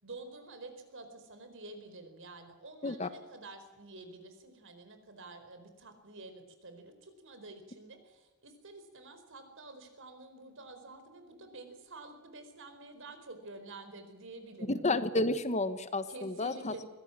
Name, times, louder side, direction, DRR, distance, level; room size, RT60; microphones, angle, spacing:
voice 1, 0.0-14.9 16.1-16.9, right 2 dB, 65° right, 8 dB, 4.5 m, -49 dB
voice 2, 14.7-16.8, left 2 dB, 30° left, 12 dB, 1.2 m, -31 dB
22.5 x 17.0 x 7.6 m, 1.2 s
head